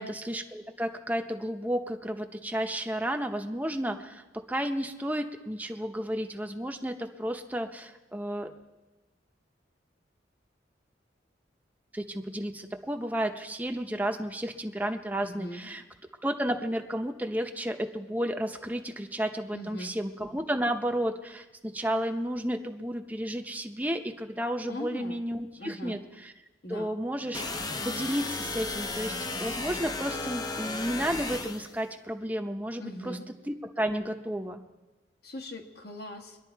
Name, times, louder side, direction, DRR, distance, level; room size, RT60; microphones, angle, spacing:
voice 1, 0.0-8.5 11.9-15.8 16.2-26.3 26.7-33.2 33.5-34.6, equal, 10° right, 4 dB, 0.8 m, -32 dB
voice 2, 15.2-15.7 19.5-20.0 24.7-25.2 25.6-26.0 26.6-26.9 32.8-33.2 35.2-36.4, left 1 dB, 55° left, 3 dB, 1.5 m, -40 dB
sound 1, 27.3-31.8, left 3 dB, 20° left, 0.7 m, -34 dB
23.5 x 11.0 x 4.6 m, 1.1 s
head